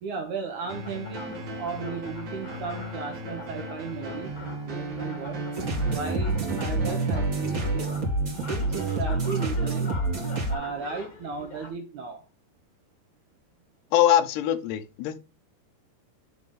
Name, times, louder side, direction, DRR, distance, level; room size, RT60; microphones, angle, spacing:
voice 1, 0.0-4.3 4.6-5.4 5.9-7.9 8.5-9.9 10.5-12.2, right 5 dB, 75° right, 1.8 m, -35 dB
sound 1, 0.6-11.7, left 3 dB, 40° left, 1.3 m, -43 dB
sound 2, 0.7-7.8, right 2 dB, 50° right, 1.4 m, -36 dB
sound 3, 5.5-10.5, right 2 dB, 35° right, 1.5 m, -27 dB
voice 2, 13.9-15.2, left 11 dB, 85° left, 3.0 m, -22 dB
11.5 x 3.9 x 3.6 m
omnidirectional pair, 4.7 m